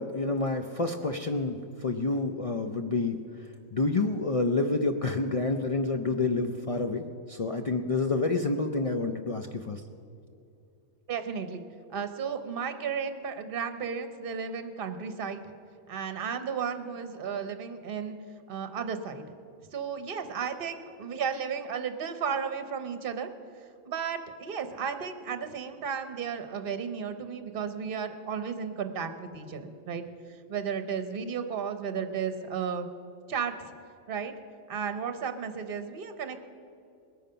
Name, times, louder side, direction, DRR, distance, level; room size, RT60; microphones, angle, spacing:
voice 1, 0.0-3.2 3.7-9.8, left 3 dB, 60° left, 5 dB, 0.3 m, -28 dB
voice 2, 11.1-11.6 11.9-15.4 15.9-18.2 18.5-19.2 19.7-23.3 23.8-30.0 30.5-32.9 33.3-33.7 34.1-34.3 34.7-36.4, right 6 dB, 50° right, 9 dB, 1.0 m, -34 dB
20.5 x 9.1 x 5.6 m, 2.5 s
omnidirectional pair, 1.4 m